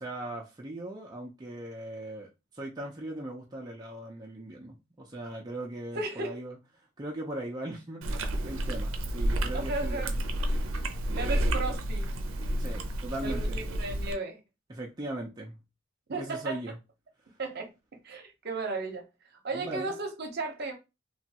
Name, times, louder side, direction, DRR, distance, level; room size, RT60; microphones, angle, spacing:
voice 1, 0.0-10.3 12.6-13.6 14.7-15.6 16.2-16.8 19.5-20.0, right 1 dB, 20° right, 0.5 m, -39 dB
voice 2, 5.9-6.4 9.5-10.1 11.2-12.1 13.2-14.4 16.1-16.6 17.4-17.7 18.0-19.1 19.4-20.7, right 3 dB, 55° right, 0.8 m, -34 dB
Chewing mastication, 8.0-14.1, right 1 dB, 85° right, 0.5 m, -30 dB
3.0 x 2.3 x 2.8 m
head